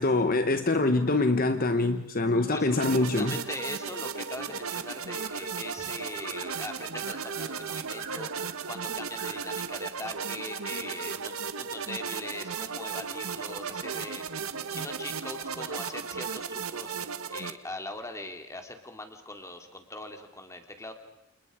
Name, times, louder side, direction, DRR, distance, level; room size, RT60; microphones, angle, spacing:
voice 1, 0.0-3.3, left 2 dB, 40° left, 1.0 m, -24 dB
voice 2, 2.5-14.2 14.5-20.9, left 2 dB, 15° left, 2.4 m, -41 dB
sound 1, 2.7-17.5, right 6 dB, 75° right, 1.4 m, -35 dB
sound 2, 5.1-5.8 6.0-8.7 8.9-9.8 10.4-11.3 12.3-14.1 15.2-16.4, right 5 dB, 45° right, 5.2 m, -49 dB
29.5 x 28.5 x 4.9 m
head